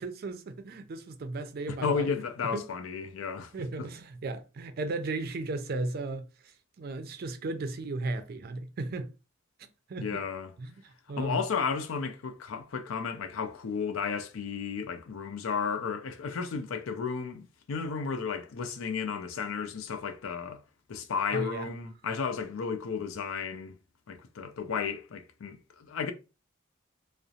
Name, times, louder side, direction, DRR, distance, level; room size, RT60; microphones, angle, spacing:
voice 1, 0.0-2.1 2.5-2.6 3.5-9.1 9.9-10.2 10.6-11.4 21.3-21.7, right 2 dB, 50° right, 0.4 m, -35 dB
voice 2, 1.7-3.5 3.8-3.9 10.0-10.5 11.2-20.6 20.9-23.8 24.1-26.1, left 5 dB, 90° left, 0.4 m, -33 dB
2.4 x 2.0 x 2.7 m
head